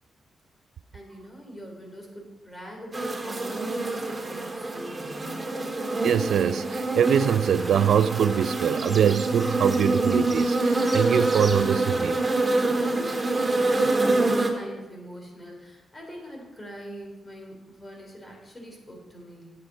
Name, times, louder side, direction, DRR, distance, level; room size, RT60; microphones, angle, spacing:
voice 1, 0.9-5.7 12.9-19.5, equal, 30° left, 3.4 m, -42 dB
sound 1, 2.9-14.5, right 2 dB, 25° right, 1.7 m, -26 dB
voice 2, 6.0-12.2, right 8 dB, 75° right, 0.3 m, -23 dB
9.3 x 9.0 x 4.1 m
cardioid pair, 65°, 0 cm